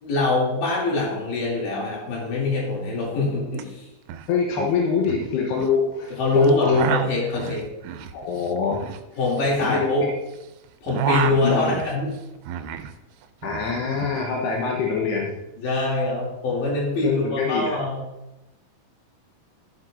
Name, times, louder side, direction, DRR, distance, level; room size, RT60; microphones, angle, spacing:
voice 1, 0.0-3.8 6.1-7.7 9.2-10.1 10.8-12.1 15.6-18.0, left 2 dB, 55° left, -5 dB, 4.1 m, -23 dB
sound 1, 3.5-3.6 3.9-4.3 4.6-5.8 6.4-10.4 10.7-13.0 13.2-14.2, right 10 dB, 85° right, 2.6 m, -30 dB
voice 2, 4.3-6.8 8.1-8.9 9.6-9.9 11.4-11.7 13.4-15.3 17.0-17.8, left 5 dB, 90° left, -1 dB, 3.1 m, -25 dB
14.0 x 7.7 x 2.6 m, 0.93 s
omnidirectional pair, 4.7 m